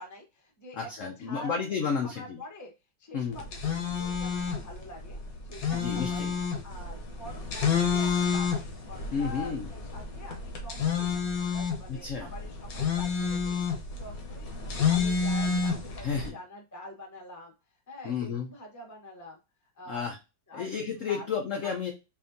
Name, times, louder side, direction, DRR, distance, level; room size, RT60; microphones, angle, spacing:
voice 1, 0.0-1.6 2.0-2.7 3.0-5.2 5.4-6.3 6.6-11.2 11.5-17.5 17.9-19.4 19.8-20.1 20.5-20.7 21.1-21.2, left 1 dB, 20° left, 2 dB, 0.4 m, -46 dB
voice 2, 0.7-2.4 3.1-3.4 5.7-6.3 9.1-9.7 11.9-12.3 16.0-16.4 18.0-18.5 19.9-20.2 20.5-21.9, left 6 dB, 80° left, 2 dB, 0.6 m, -32 dB
sound 1, 3.3-16.3, left 6 dB, 55° left, 1.1 m, -30 dB
5.2 x 2.5 x 2.6 m, 0.27 s
omnidirectional pair, 2.2 m